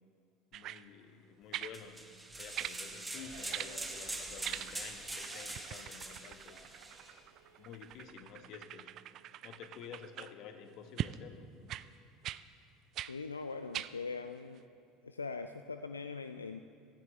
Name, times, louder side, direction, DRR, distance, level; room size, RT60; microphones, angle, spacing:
voice 1, 0.5-6.8 7.6-8.9 9.4-11.5, left 7 dB, 50° left, 7 dB, 1.1 m, -51 dB
sound 1, 0.5-0.8 1.5-1.8 2.6-2.8 3.5-3.7 4.4-4.9 5.2-10.3 11.0-11.2 11.7-11.9 12.2-12.4 12.9-13.1 13.7-13.9 14.6-14.7, right 12 dB, 45° right, 0.3 m, -42 dB
sound 2, 1.7-7.1, right 2 dB, 10° right, 1.3 m, -44 dB
Crowd, 3.0-8.4, right 4 dB, 70° right, 2.1 m, -58 dB
voice 2, 13.1-14.6 15.0-16.6, left 4 dB, 85° left, 9 dB, 0.3 m, -41 dB
16.5 x 14.0 x 3.2 m, 2.5 s
figure-of-eight pair, 70°, 0 cm